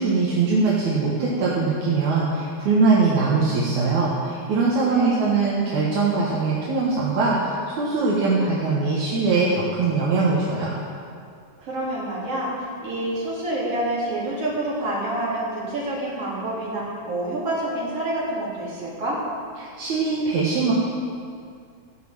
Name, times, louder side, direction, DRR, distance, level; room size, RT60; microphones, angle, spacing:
voice 1, 0.0-10.8 19.6-20.7, right 4 dB, 75° right, -6 dB, 2.8 m, -22 dB
voice 2, 4.8-5.3 11.6-19.2, right 1 dB, 50° right, -7 dB, 4.4 m, -28 dB
14.0 x 6.8 x 7.8 m, 2.3 s
omnidirectional pair, 3.5 m